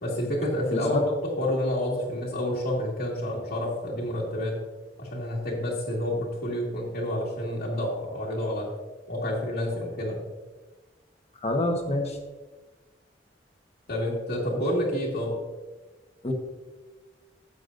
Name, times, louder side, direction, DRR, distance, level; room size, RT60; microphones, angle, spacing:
voice 1, 0.0-4.5 5.0-8.7 9.1-10.2 13.9-15.4, left 1 dB, 60° left, -7 dB, 1.9 m, -29 dB
voice 2, 11.4-12.2 16.2-16.3, left 1 dB, 35° left, 3 dB, 1.3 m, -26 dB
13.0 x 8.3 x 2.6 m, 1.2 s
head